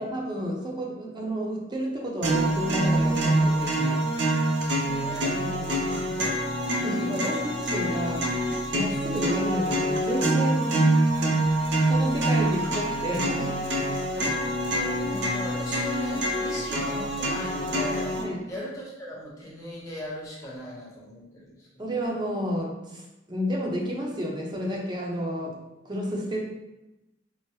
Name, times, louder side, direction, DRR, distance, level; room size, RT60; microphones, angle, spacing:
voice 1, 0.0-4.0 5.4-5.8 6.8-8.3 8.7-11.4 11.9-13.7 18.1-18.4 21.8-23.0 23.3-25.6 25.8-26.4, equal, 25° right, -1 dB, 0.6 m, -31 dB
sound 1, 2.2-18.2, right 1 dB, 70° right, 0.6 m, -25 dB
voice 2, 4.6-6.0 7.3-7.4 12.4-13.0 13.5-13.6 14.8-18.2 18.5-21.7, equal, 20° left, -6 dB, 1.0 m, -39 dB
4.5 x 2.0 x 3.0 m, 0.97 s
head